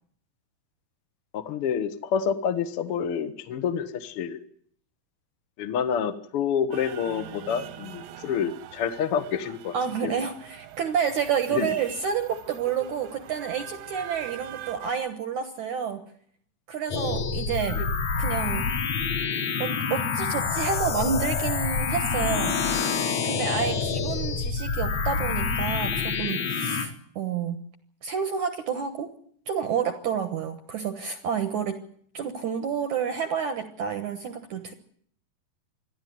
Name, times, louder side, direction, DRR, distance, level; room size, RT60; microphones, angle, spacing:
voice 1, 1.3-4.4 5.6-9.7 10.0-10.1 11.5-11.7 17.7-17.9, left 7 dB, 70° left, 10 dB, 1.3 m, -28 dB
sound 1, 6.7-14.9, right 12 dB, 85° right, 3.5 m, -43 dB
voice 2, 9.7-16.1 16.7-17.8 18.2-18.7 19.6-22.6 23.2-27.6 28.0-29.1 29.5-31.8 32.1-34.7, right 7 dB, 70° right, 8 dB, 1.9 m, -29 dB
sound 2, 16.9-26.9, left 5 dB, 50° left, 2.3 m, -27 dB
27.0 x 11.5 x 9.5 m, 0.63 s
omnidirectional pair, 4.9 m